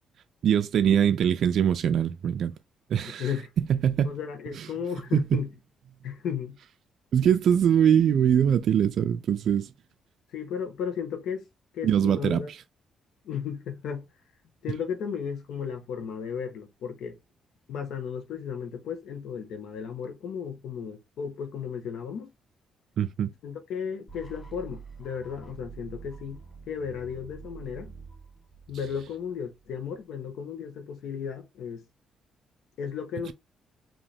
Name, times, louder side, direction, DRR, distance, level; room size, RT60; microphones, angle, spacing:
voice 1, 0.4-2.5 2.9-3.3 3.7-4.1 4.6-4.7 5.1-5.4 7.1-9.7 11.8-12.6 23.0-23.3 33.3-33.4, right 9 dB, 65° right, 0.3 m, -23 dB
voice 2, 3.1-3.5 4.0-5.5 6.0-6.6 10.3-11.4 11.7-12.5 13.2-14.0 14.6-17.2 17.7-22.3 23.4-26.4 26.7-27.9 28.7-31.8 32.8-33.3, left 7 dB, 80° left, 1.1 m, -34 dB
sound 1, 24.1-30.0, right 5 dB, 30° left, 1.7 m, -46 dB
5.2 x 2.8 x 3.4 m
cardioid pair, 90°, 0 cm